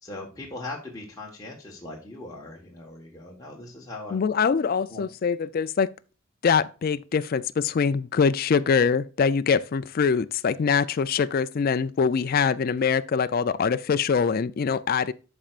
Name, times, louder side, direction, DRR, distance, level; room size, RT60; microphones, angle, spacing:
voice 1, 0.0-4.2 4.9-5.1 12.3-12.6, left 2 dB, 15° left, 1.3 m, -40 dB
voice 2, 4.1-5.9 6.4-15.1, left 6 dB, 45° left, 0.4 m, -23 dB
12.5 x 4.4 x 2.4 m
head